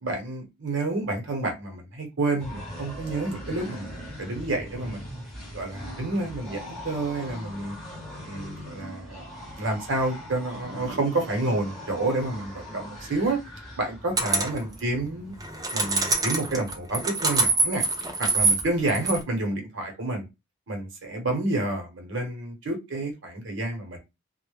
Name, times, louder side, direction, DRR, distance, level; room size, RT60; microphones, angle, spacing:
voice 1, 0.0-5.0 5.5-7.8 8.2-9.2 9.6-13.4 13.8-15.4 15.7-17.8 18.2-20.3 20.7-24.0, right 2 dB, 65° right, 3 dB, 0.9 m, -29 dB
sound 1, 2.4-15.6, equal, ahead, 0.8 m, -40 dB
sound 2, 14.2-14.6 15.4-19.2, right 3 dB, 20° right, 0.5 m, -25 dB
2.2 x 2.0 x 3.0 m, 0.24 s
head